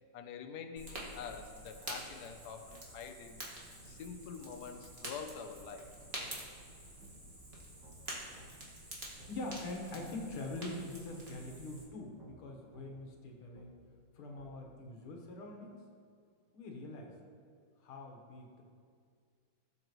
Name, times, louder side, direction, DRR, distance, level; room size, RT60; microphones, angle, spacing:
voice 1, 0.1-3.4 3.8-5.9 8.1-8.2, left 6 dB, 60° left, 6 dB, 1.1 m, -46 dB
Fire, 0.8-11.8, right 1 dB, 30° right, 1.9 m, -48 dB
sound 1, 6.2-6.3 7.0-7.2 7.8-8.0 8.4-8.5 9.2-9.3 10.0-10.1 10.6-10.7 11.4-11.5 12.2-12.3 12.7-12.9 13.6-13.7 14.4-14.5, right 2 dB, 55° right, 2.2 m, -57 dB
voice 2, 9.3-13.7 14.2-15.7 16.5-17.1 17.8-18.6, left 2 dB, 85° left, 1 dB, 2.3 m, -44 dB
17.0 x 7.5 x 3.1 m, 2.2 s
omnidirectional pair, 2.4 m